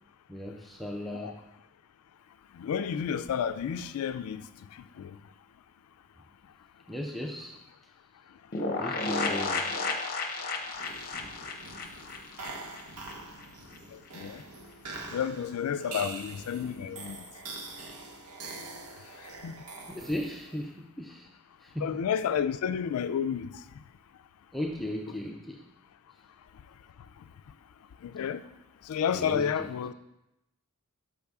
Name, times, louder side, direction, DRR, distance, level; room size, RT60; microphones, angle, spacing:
voice 1, 0.3-1.4 6.9-7.6 8.8-9.9 19.9-21.3 21.6-22.0 24.5-25.6 29.1-29.7, left 1 dB, ahead, 0.4 m, -37 dB
voice 2, 2.5-4.4 5.0-5.2 13.9-14.4 15.1-17.3 19.4-19.6 21.8-23.6 28.0-28.4 28.9-29.9, left 8 dB, 70° left, 0.3 m, -31 dB
sound 1, 8.5-13.1 13.4-13.5 13.7-13.8, left 3 dB, 40° left, 0.6 m, -32 dB
sound 2, 10.7-20.6, right 3 dB, 90° right, 0.9 m, -44 dB
6.6 x 5.5 x 3.5 m
head